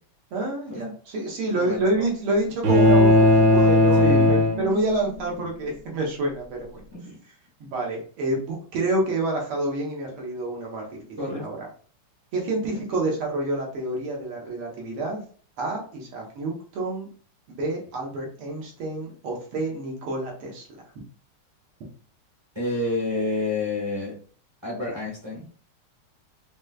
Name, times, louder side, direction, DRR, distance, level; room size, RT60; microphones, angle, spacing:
voice 1, 0.3-6.8 7.6-10.8 11.3-11.7 12.3-15.2 15.6-17.1 17.5-20.6 21.0-21.1, right 2 dB, 85° right, -1 dB, 1.9 m, -28 dB
voice 2, 1.5-2.1 3.9-4.4 6.9-7.2 11.2-11.5 22.5-24.1 24.6-25.4, left 2 dB, 25° right, -5 dB, 0.6 m, -29 dB
sound 1, 2.6-5.2, left 1 dB, 60° right, 1.1 m, -17 dB
4.9 x 2.2 x 2.3 m, 0.43 s
omnidirectional pair, 2.4 m